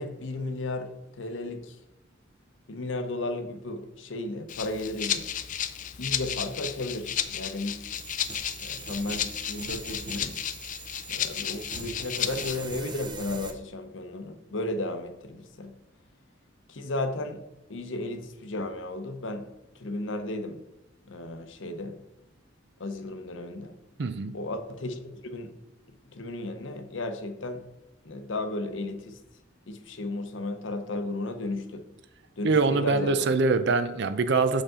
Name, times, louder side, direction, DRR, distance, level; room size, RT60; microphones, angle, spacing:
voice 1, 0.0-1.8 2.7-5.3 6.0-7.8 8.6-10.4 11.1-15.8 16.7-17.4 17.7-19.5 19.7-20.6 21.1-22.0 22.8-23.8 24.3-25.5 25.9-27.7 28.0-29.2 29.7-31.9 32.4-33.3, left 2 dB, 65° left, 0.8 m, -34 dB
Rattle (instrument), 4.5-12.6, left 10 dB, 40° left, 0.4 m, -33 dB
sound 1, 7.9-13.5, right 3 dB, 25° right, 0.7 m, -42 dB
voice 2, 24.0-24.3 32.4-34.6, right 3 dB, 60° right, 0.5 m, -24 dB
6.6 x 5.1 x 3.7 m
head